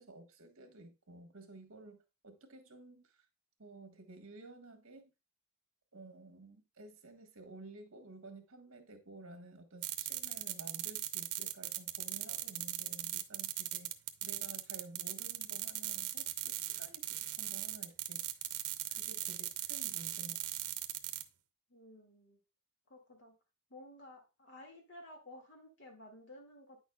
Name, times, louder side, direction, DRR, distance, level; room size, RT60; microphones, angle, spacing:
voice 1, 0.0-3.2 3.6-5.1 5.9-13.9 14.2-18.4 18.9-20.4, right 2 dB, 60° right, 1.4 m, -53 dB
sound 1, 9.8-21.2, right 14 dB, 90° right, 0.7 m, -39 dB
voice 2, 21.7-22.4 22.9-23.3 23.7-26.8, left 1 dB, 55° left, 2.2 m, -54 dB
9.2 x 6.2 x 2.3 m
head